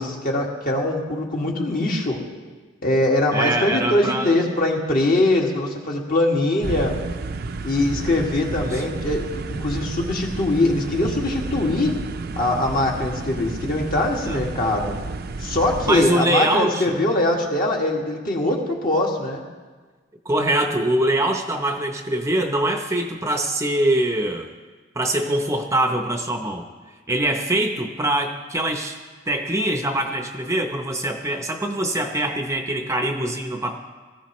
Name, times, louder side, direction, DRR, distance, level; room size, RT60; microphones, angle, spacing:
voice 1, 0.0-2.2 2.8-6.9 7.6-11.9 12.4-15.0 15.4-19.4, left 2 dB, 50° left, -1 dB, 2.0 m, -22 dB
voice 2, 3.3-4.4 8.6-8.8 14.2-14.4 15.8-17.0 20.2-24.5 25.0-26.6 27.1-29.0 29.3-33.8, right 1 dB, 15° right, 4 dB, 0.7 m, -23 dB
sound 1, 6.6-16.1, right 3 dB, 55° right, 0.5 m, -31 dB
19.0 x 14.5 x 3.1 m, 1.4 s
head